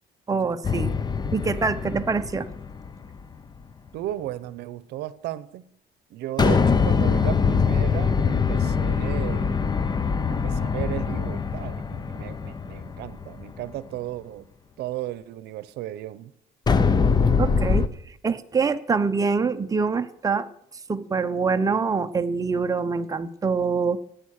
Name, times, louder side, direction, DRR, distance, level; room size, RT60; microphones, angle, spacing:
voice 1, 0.3-1.0 1.3-2.5 17.4-20.5 20.9-24.0, right 5 dB, 20° right, 0.8 m, -25 dB
sound 1, 0.6-3.2 6.4-13.6 16.7-17.9, left 5 dB, 25° left, 0.8 m, -23 dB
voice 2, 3.9-5.7 6.1-9.6 10.3-14.5 14.8-16.3, right 14 dB, 80° right, 0.8 m, -35 dB
15.5 x 9.4 x 6.5 m
cardioid pair, 110°, 17 cm